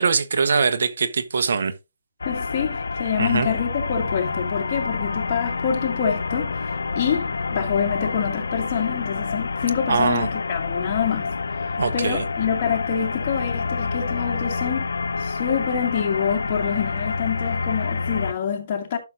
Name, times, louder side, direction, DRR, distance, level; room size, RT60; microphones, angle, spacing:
voice 1, 0.0-1.7 3.2-3.5 9.9-10.3 11.8-12.2, right 5 dB, 65° right, 1.1 m, -22 dB
sound 1, 2.2-18.3, left 4 dB, 85° left, 0.7 m, -28 dB
voice 2, 2.3-11.3 11.9-14.9 15.2-19.0, left 7 dB, 30° left, 2.3 m, -26 dB
12.0 x 6.3 x 2.6 m
hypercardioid pair, 165°, 0 cm